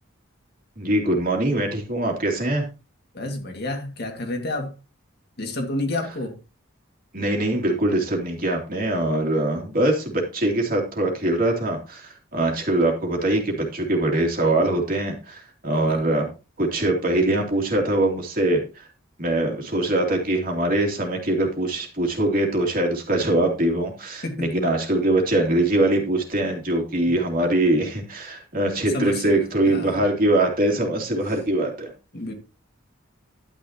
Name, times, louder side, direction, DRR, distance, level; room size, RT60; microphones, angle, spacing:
voice 1, 0.8-2.7 7.1-16.3 16.6-18.9 19.2-31.9, right 1 dB, 40° right, 2.9 m, -23 dB
voice 2, 3.1-4.7 5.4-6.4 15.9-16.0 24.2-24.5 27.1-27.2 28.9-29.4 29.7-30.0 32.1-32.3, left 2 dB, 50° left, 2.1 m, -29 dB
11.5 x 9.4 x 2.9 m
head